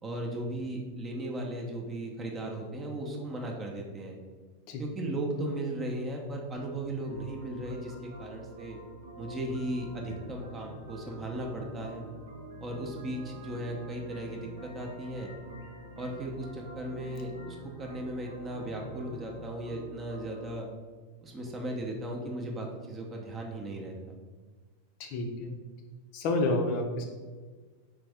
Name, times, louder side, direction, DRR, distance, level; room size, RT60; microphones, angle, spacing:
voice 1, 0.0-4.1 4.8-8.8 9.2-12.1 12.6-15.3 16.0-20.7 21.2-24.2, right 1 dB, 20° right, 1 dB, 0.6 m, -36 dB
sound 1, 7.0-20.5, right 1 dB, 65° right, 0.7 m, -47 dB
voice 2, 25.0-25.5 26.1-27.1, left 2 dB, 45° left, 3 dB, 0.5 m, -29 dB
3.4 x 3.4 x 3.3 m, 1.4 s
figure-of-eight pair, 90°, 0 cm